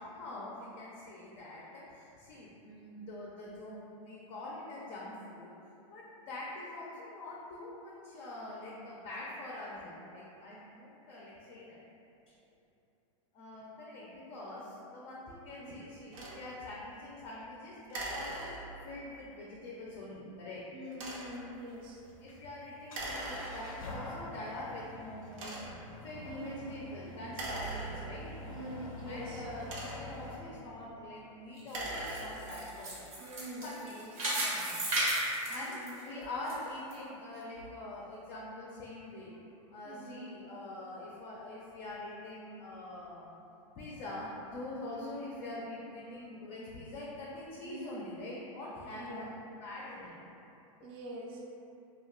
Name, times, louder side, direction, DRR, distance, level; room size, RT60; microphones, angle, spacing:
voice 1, 0.0-5.5 5.9-11.8 13.3-20.6 22.2-28.4 29.1-33.1 33.6-34.9 35.5-39.4 39.7-43.4 43.8-50.6, left 2 dB, 35° left, -5 dB, 0.4 m, -44 dB
sound 1, 16.1-16.4 17.9-18.9 20.9-21.5 22.9-23.9 24.6-24.7 25.3-25.9 27.3-28.4 29.4-30.3 31.6-32.6, right 2 dB, 70° right, 0.7 m, -41 dB
voice 2, 20.7-22.0 26.2-26.7 28.5-29.4 33.2-34.1 35.6-35.9 39.8-40.2 44.9-45.3 47.6-48.0 48.9-49.4 50.8-51.4, right 1 dB, 30° right, -2 dB, 0.4 m, -45 dB
sound 2, 21.3-30.4, left 1 dB, 90° left, 0.5 m, -46 dB
sound 3, 31.6-36.5 36.9-37.0 37.6-37.7, right 1 dB, 85° right, 1.1 m, -34 dB
2.3 x 2.1 x 3.6 m, 2.8 s
supercardioid pair, 130°, 17 cm